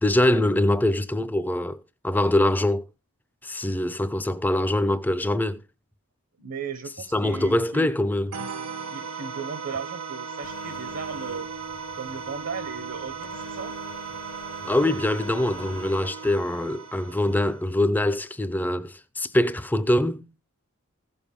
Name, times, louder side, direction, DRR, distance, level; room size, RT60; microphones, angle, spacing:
voice 1, 0.0-2.8 3.4-5.6 7.1-8.4 14.6-20.3, left 1 dB, 10° left, 0.5 m, -23 dB
voice 2, 6.4-7.9 8.8-11.5 11.9-13.7, right 5 dB, 65° right, 0.9 m, -36 dB
sound 1, 8.3-17.8, right 6 dB, 90° right, 1.0 m, -37 dB
Telephone, 10.4-16.0, left 4 dB, 85° left, 0.8 m, -47 dB
15.5 x 7.1 x 3.6 m
head